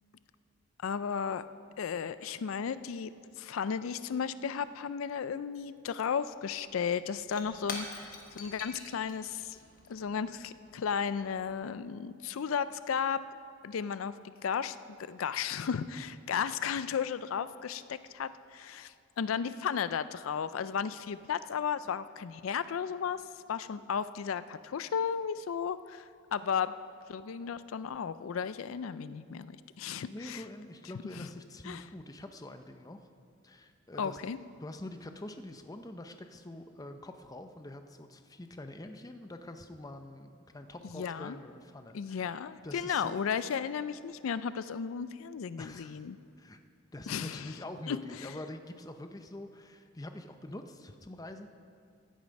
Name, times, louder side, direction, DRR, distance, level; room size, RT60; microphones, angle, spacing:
voice 1, 0.8-1.4 1.8-3.1 3.4-9.6 9.9-13.2 13.6-23.2 23.5-26.0 26.3-26.7 27.1-30.4 31.2-31.3 31.7-31.8 34.0-34.4 40.8-41.4 41.9-46.2 47.1-47.5 47.9-48.0, left 7 dB, 85° left, 14 dB, 0.4 m, -34 dB
Shatter / Crushing, 6.3-6.4 6.6-11.5, left 3 dB, 40° left, 1.6 m, -46 dB
voice 2, 30.0-33.0 33.4-34.2 34.6-42.3 42.6-43.1 45.6-46.0 46.4-46.6 46.9-51.5, left 1 dB, 20° left, 7 dB, 0.6 m, -45 dB
16.0 x 10.5 x 5.3 m, 2.4 s
head